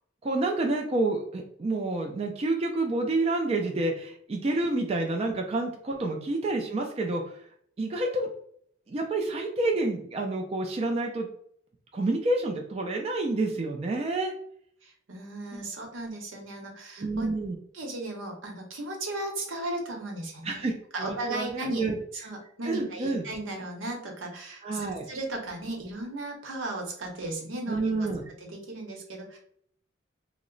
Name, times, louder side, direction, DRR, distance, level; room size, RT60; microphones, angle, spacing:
voice 1, 0.2-7.4 7.8-8.3 8.9-11.3 11.9-14.3 15.5-15.6 17.0-17.6 20.4-22.0 22.6-23.3 24.6-25.1 27.7-28.2, right 2 dB, 30° right, 2 dB, 0.4 m, -29 dB
voice 2, 14.8-17.3 17.7-20.6 20.9-21.8 22.1-29.4, right 2 dB, 85° right, 1 dB, 0.9 m, -36 dB
2.9 x 2.0 x 3.8 m, 0.65 s
head